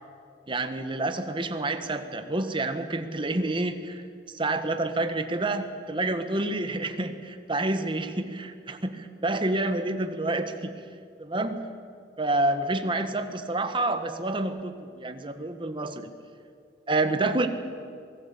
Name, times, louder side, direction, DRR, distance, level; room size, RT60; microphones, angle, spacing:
voice 1, 0.5-4.0 4.3-10.8 11.2-11.6 12.2-16.0 16.9-17.5, right 2 dB, 30° right, 8 dB, 1.6 m, -28 dB
26.0 x 18.5 x 8.6 m, 2.2 s
head